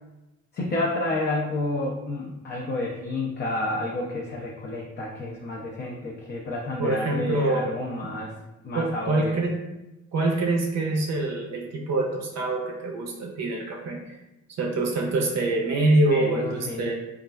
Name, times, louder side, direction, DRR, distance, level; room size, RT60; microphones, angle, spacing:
voice 1, 0.5-8.3 8.6-9.4 16.1-16.8, left 2 dB, 35° left, -2 dB, 0.4 m, -30 dB
voice 2, 6.8-7.7 8.7-9.6 10.1-14.2 14.6-16.9, right 2 dB, 60° right, 1 dB, 0.5 m, -25 dB
3.0 x 2.4 x 2.2 m, 0.99 s
cardioid pair, 90°, 30 cm